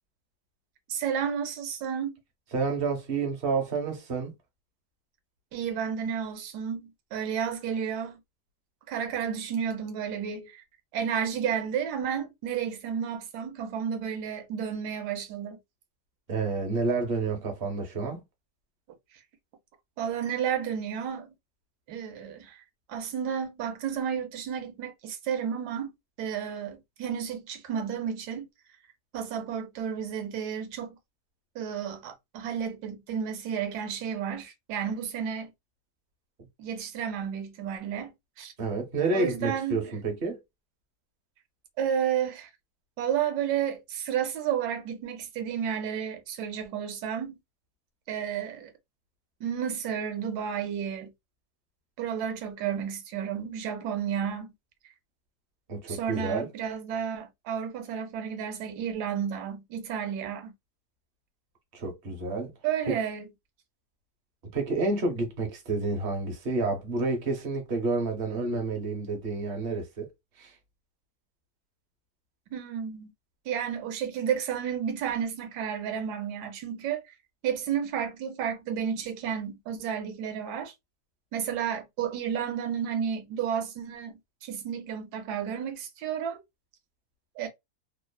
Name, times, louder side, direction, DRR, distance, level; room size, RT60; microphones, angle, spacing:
voice 1, 0.9-2.2 5.5-8.2 8.9-10.6 10.9-15.6 20.0-21.3 21.9-22.6 22.9-25.9 26.2-28.5 29.1-31.0 31.5-35.5 36.6-38.5 39.1-39.8 41.8-42.5 43.0-47.4 48.1-48.7 49.4-51.1 52.0-54.5 55.9-60.5 62.6-63.3 72.5-73.1 73.5-77.0 77.4-80.7 81.3-86.4 87.4-87.5, right 8 dB, 75° right, 1.2 m, -32 dB
voice 2, 2.5-4.3 16.3-18.2 38.6-40.4 55.7-56.5 61.7-62.5 62.9-63.0 64.5-70.1 70.4-70.5, right 3 dB, 45° right, 0.8 m, -29 dB
3.0 x 2.0 x 2.2 m
omnidirectional pair, 1.8 m